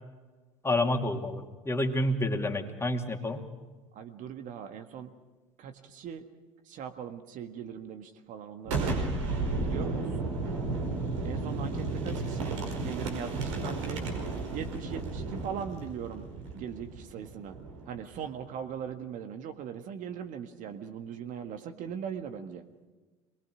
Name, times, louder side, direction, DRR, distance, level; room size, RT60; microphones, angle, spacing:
voice 1, 0.6-3.4, left 1 dB, 15° left, 4 dB, 2.7 m, -29 dB
voice 2, 3.9-5.1 5.6-6.2 6.7-9.0 9.6-10.1 11.2-14.0 14.5-17.6 17.9-22.6, right 8 dB, 50° right, 8 dB, 1.7 m, -40 dB
Boom, 8.6-18.2, right 3 dB, 75° right, 5.0 m, -33 dB
24.0 x 21.5 x 6.3 m, 1.3 s
hypercardioid pair, 70°, 16 cm